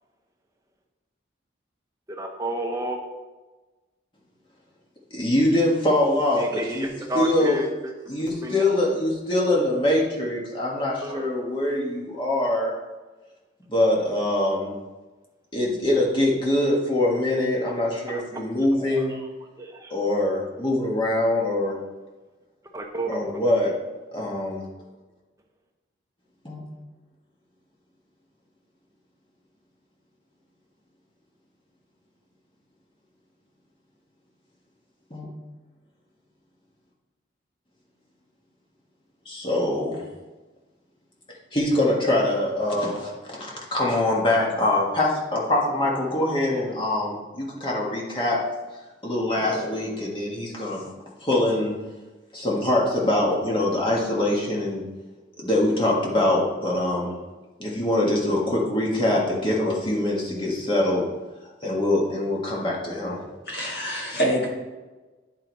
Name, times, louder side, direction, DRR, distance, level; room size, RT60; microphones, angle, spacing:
voice 1, 2.1-3.0 6.4-7.9 8.4-8.6 11.0-11.4 18.1-18.2 18.8-19.0 19.6-19.9 22.7-23.2 23.6-23.7, right 1 dB, 15° right, 2 dB, 0.8 m, -31 dB
voice 2, 5.1-7.6 8.1-12.7 13.7-14.8 15.5-19.2 19.9-21.8 23.1-23.7 24.1-24.7 26.4-26.6 35.1-35.3 39.3-40.1 41.5-48.4 49.0-50.9 51.2-51.7 52.3-54.8 55.4-57.1 57.6-61.1 61.6-63.3, left 1 dB, 25° left, -3 dB, 1.6 m, -23 dB
voice 3, 63.5-64.5, right 1 dB, 55° left, -2 dB, 1.8 m, -25 dB
9.6 x 4.7 x 4.1 m, 1.2 s
head